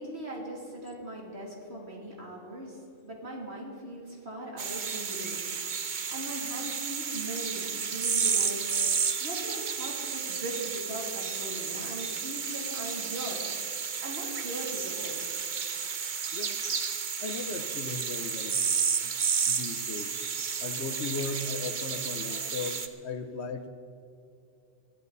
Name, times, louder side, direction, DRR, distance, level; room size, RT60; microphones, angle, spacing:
voice 1, 0.0-5.4 6.1-8.6 9.2-13.4 14.0-15.2, right 1 dB, 65° right, -2 dB, 3.3 m, -39 dB
sound 1, 4.6-22.9, right 6 dB, 45° right, 0.9 m, -32 dB
voice 2, 17.2-18.6 19.0-19.1 19.5-20.2 20.6-23.7, left 4 dB, 70° left, 8 dB, 1.2 m, -37 dB
21.5 x 13.5 x 4.1 m, 2.8 s
omnidirectional pair, 1.2 m